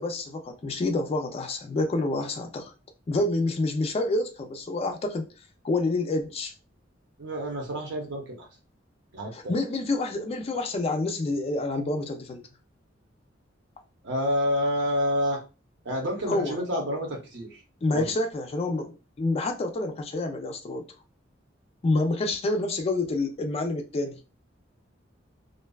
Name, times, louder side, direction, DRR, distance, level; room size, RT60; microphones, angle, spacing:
voice 1, 0.0-2.7 3.1-5.3 5.6-6.5 9.3-12.4 16.3-16.6 17.8-20.8 21.8-24.2, left 2 dB, 30° left, 0.3 m, -28 dB
voice 2, 7.2-8.5 9.1-9.5 14.0-15.4 15.8-17.6 17.9-18.1, equal, 65° right, 0.8 m, -28 dB
2.5 x 2.2 x 2.2 m
head